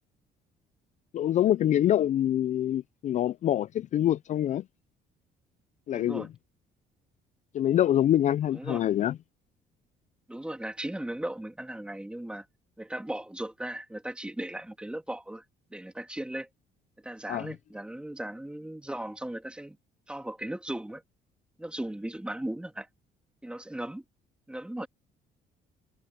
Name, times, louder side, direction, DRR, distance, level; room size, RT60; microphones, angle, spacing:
voice 1, 1.1-4.6 5.9-6.3 7.5-9.2 17.3-17.5, left 11 dB, 45° left, 0.4 m, -25 dB
voice 2, 5.9-6.3 8.5-8.8 10.3-12.5 12.8-15.4 15.7-16.5 17.0-19.8 20.1-21.0 21.6-22.9 23.4-24.0 24.5-24.9, right 1 dB, 5° right, 2.8 m, -37 dB
cardioid pair, 110°, 17 cm